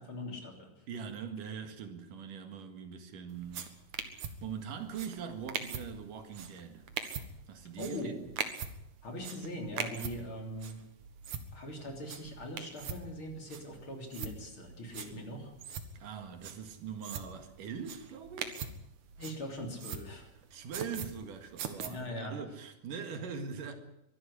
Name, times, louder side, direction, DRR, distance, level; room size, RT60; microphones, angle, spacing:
voice 1, 0.0-0.8 7.8-8.3 9.0-10.8 11.5-15.5 16.0-16.1 19.2-20.3 21.7-22.4, left 1 dB, 40° left, 4.0 m, -41 dB
voice 2, 0.9-3.7 4.1-6.9 7.5-8.1 15.9-18.6 20.5-23.8, right 6 dB, 80° right, 3.5 m, -42 dB
sound 1, 3.3-21.9, right 7 dB, 65° right, 2.8 m, -43 dB
23.5 x 12.5 x 9.9 m
omnidirectional pair, 3.7 m